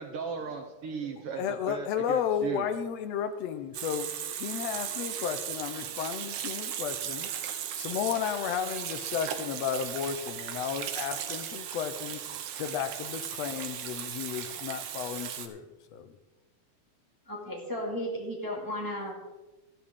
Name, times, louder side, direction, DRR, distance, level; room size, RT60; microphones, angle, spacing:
voice 1, 0.0-2.7, right 5 dB, 70° right, 5 dB, 1.5 m, -37 dB
voice 2, 1.4-7.3 7.8-12.2 12.6-16.1, left 8 dB, 75° left, 9 dB, 1.8 m, -33 dB
Water tap faucet / Sink (filling or washing), 3.7-15.5, right 9 dB, 90° right, 2.3 m, -37 dB
voice 3, 17.3-19.1, equal, 10° right, -2 dB, 1.5 m, -34 dB
13.5 x 11.5 x 3.7 m, 1.2 s
omnidirectional pair, 3.3 m